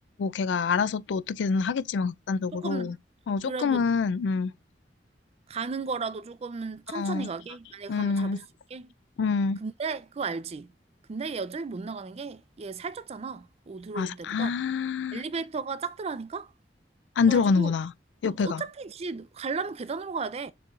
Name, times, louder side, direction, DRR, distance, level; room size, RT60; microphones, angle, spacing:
voice 1, 0.2-3.0 3.3-4.5 6.9-7.3 7.9-8.4 9.2-9.6 14.0-15.2 17.2-17.9 18.2-18.6, left 5 dB, 90° left, 0.4 m, -26 dB
voice 2, 2.5-3.0 3.4-3.8 5.5-8.4 8.7-8.9 9.6-10.7 11.1-14.5 15.1-16.5 17.3-17.7 18.2-20.5, right 4 dB, 35° right, 0.4 m, -35 dB
6.8 x 3.1 x 2.4 m
head